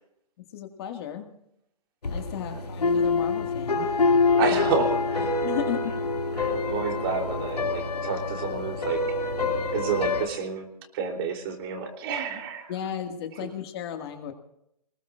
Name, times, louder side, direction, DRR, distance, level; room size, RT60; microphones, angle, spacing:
voice 1, 0.4-1.3 2.1-3.9 5.4-5.9 12.7-14.3, left 9 dB, 40° left, 5 dB, 2.0 m, -34 dB
sound 1, 2.0-10.3, left 4 dB, 90° left, 2.5 m, -26 dB
voice 2, 4.4-5.4 6.4-9.0 9.7-10.7 10.9-12.7 13.4-13.5, right 6 dB, 40° right, 2 dB, 3.4 m, -30 dB
24.5 x 20.5 x 2.5 m, 0.76 s
hypercardioid pair, 145°, 20 cm